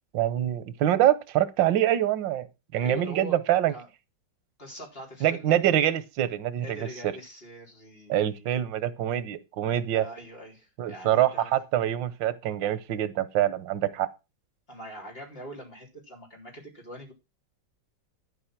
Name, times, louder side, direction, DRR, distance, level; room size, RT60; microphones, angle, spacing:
voice 1, 0.1-2.5 2.7-3.7 5.2-7.1 8.1-10.0 10.8-14.1, right 12 dB, 90° right, 1.6 m, -25 dB
voice 2, 2.8-3.3 3.7-3.9 4.6-5.8 6.6-8.6 9.9-11.5 14.7-17.1, equal, 30° left, 3.8 m, -43 dB
12.0 x 5.2 x 5.9 m
omnidirectional pair, 1.9 m